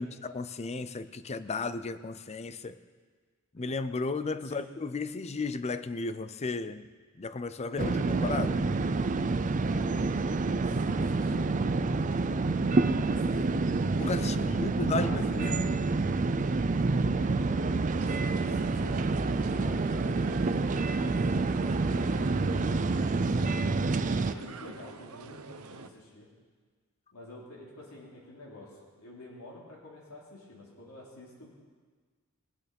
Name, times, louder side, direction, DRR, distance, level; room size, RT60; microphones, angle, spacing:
voice 1, 0.0-2.8 3.5-6.8 7.2-8.6 14.0-15.7, left 3 dB, 30° left, 13 dB, 0.5 m, -34 dB
sound 1, 7.8-24.3, right 3 dB, 35° right, 0.5 m, -28 dB
voice 2, 9.6-11.6 12.4-13.6 14.2-15.9 17.1-23.3 24.1-26.3 27.1-31.5, left 1 dB, 85° left, -3 dB, 3.0 m, -48 dB
sound 2, 18.0-25.9, right 4 dB, 75° right, 0.8 m, -47 dB
19.5 x 9.0 x 5.3 m, 1.5 s
head